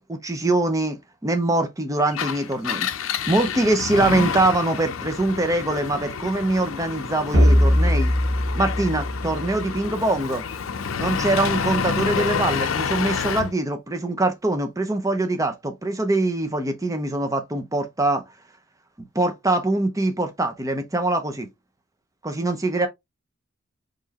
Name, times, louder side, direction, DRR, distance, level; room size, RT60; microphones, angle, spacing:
voice 1, 0.0-2.9 3.3-8.1 8.6-10.4 11.0-18.2 19.1-21.5 22.2-22.9, right 2 dB, 15° right, 0.8 m, -23 dB
Engine, 2.1-13.5, left 6 dB, 85° left, 0.5 m, -28 dB
sound 1, 7.3-9.9, equal, 65° right, 1.7 m, -20 dB
4.4 x 3.2 x 2.9 m
head